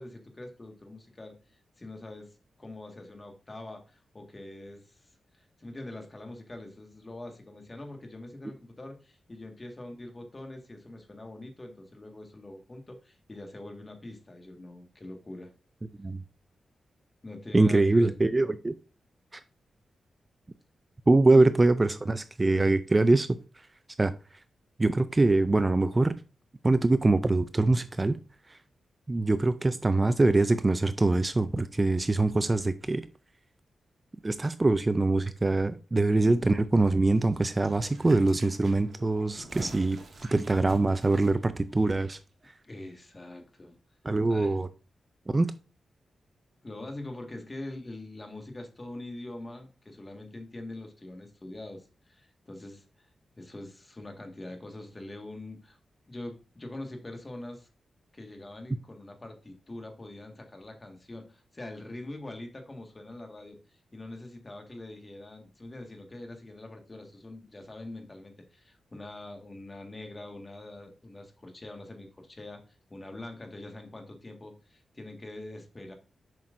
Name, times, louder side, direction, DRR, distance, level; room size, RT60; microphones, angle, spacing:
voice 1, 0.0-1.3 1.8-2.3 2.6-15.5 17.2-18.1 21.3-21.5 36.1-36.7 42.6-43.8 44.3-44.6 46.6-53.1 53.3-55.8 56.1-57.7 58.1-72.6 72.9-75.9, left 2 dB, 30° left, 1.7 m, -44 dB
voice 2, 17.5-18.7 19.3-19.4 21.1-23.3 24.0-24.1 24.8-26.1 26.6-28.2 28.5-28.6 29.1-33.1 34.2-40.0 40.3-42.2 44.0-44.7 45.3-45.5, right 2 dB, 25° right, 0.4 m, -23 dB
sound 1, 37.3-42.2 42.4-42.5, right 2 dB, 65° right, 2.0 m, -48 dB
7.4 x 5.9 x 2.6 m
cardioid pair, 75°, 0 cm